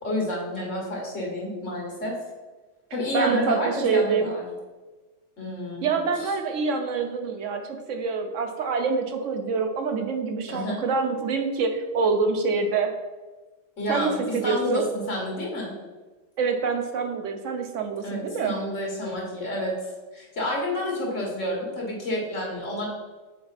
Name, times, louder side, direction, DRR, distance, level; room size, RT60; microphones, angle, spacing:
voice 1, 0.0-2.1 2.9-4.5 5.4-5.9 6.2-6.3 10.5-10.8 13.8-15.8 18.0-19.7 20.1-22.9, left 1 dB, 85° left, -2 dB, 2.1 m, -29 dB
voice 2, 3.1-4.3 5.8-12.9 13.9-14.8 16.4-18.5, right 5 dB, 80° right, 5 dB, 1.1 m, -26 dB
6.8 x 4.4 x 4.1 m, 1.2 s
omnidirectional pair, 1.3 m